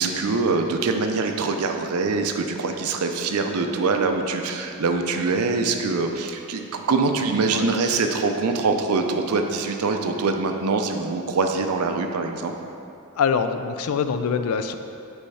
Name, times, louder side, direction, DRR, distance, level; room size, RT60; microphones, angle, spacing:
voice 1, 0.0-12.5, right 4 dB, 80° right, 5 dB, 0.5 m, -24 dB
voice 2, 13.2-14.7, left 6 dB, 75° left, 9 dB, 0.3 m, -24 dB
5.4 x 4.2 x 4.8 m, 2.6 s
head